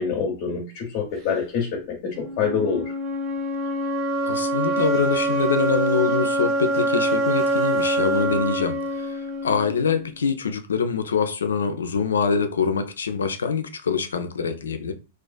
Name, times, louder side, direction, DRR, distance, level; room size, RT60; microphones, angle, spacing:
voice 1, 0.0-1.8 2.2-2.9, left 6 dB, 55° left, 0.7 m, -25 dB
sound 1, 2.1-10.1, right 1 dB, 30° right, 1.1 m, -25 dB
voice 2, 4.2-14.9, left 5 dB, 85° left, 0.3 m, -24 dB
2.3 x 2.3 x 2.2 m
hypercardioid pair, 105°, 0 cm